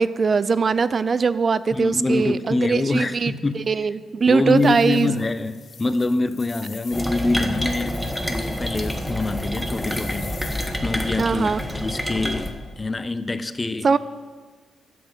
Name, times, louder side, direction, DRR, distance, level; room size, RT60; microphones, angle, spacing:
voice 1, 0.0-3.3 3.7-5.1 11.2-11.6 13.8-14.0, right 5 dB, 45° right, 16 dB, 0.4 m, -21 dB
voice 2, 1.7-3.6 4.3-8.0 8.3-10.3 10.8-13.9, left 2 dB, 25° left, 13 dB, 0.7 m, -25 dB
sound 1, 4.5-10.8, left 5 dB, 50° left, 1.3 m, -44 dB
sound 2, 6.9-12.5, equal, 5° left, 1.3 m, -28 dB
11.0 x 7.7 x 8.0 m, 1.4 s
cardioid pair, 85°, 0 cm